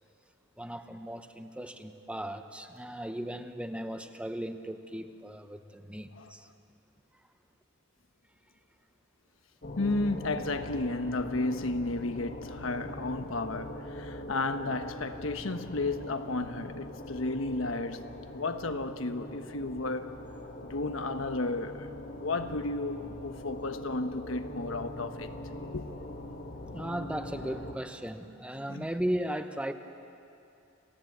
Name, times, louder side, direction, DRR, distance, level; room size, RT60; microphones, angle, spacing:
voice 1, 0.6-6.5 26.7-29.7, right 1 dB, 5° right, 0.9 m, -36 dB
sound 1, 9.6-27.7, left 1 dB, 50° left, 2.2 m, -42 dB
voice 2, 9.8-18.1 18.3-20.1 20.6-21.9 22.2-25.3 25.7-25.8 28.7-28.9, left 2 dB, 85° left, 1.2 m, -33 dB
28.5 x 17.0 x 8.0 m
head